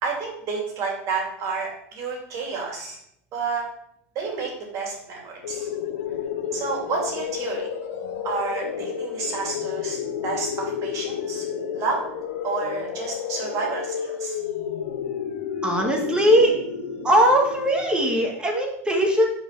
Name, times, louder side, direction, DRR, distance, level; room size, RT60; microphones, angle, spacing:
voice 1, 0.0-3.0 3.3-3.6 4.1-5.7 6.5-7.6 8.2-11.4 11.7-12.0 12.4-14.4, right 4 dB, 45° right, -1 dB, 2.8 m, -30 dB
sound 1, 5.4-18.2, left 8 dB, 75° left, 0.9 m, -31 dB
voice 2, 15.6-16.6 17.0-19.3, equal, 10° right, 0 dB, 1.6 m, -20 dB
6.3 x 3.9 x 5.9 m, 0.74 s
supercardioid pair, 120°, 8 cm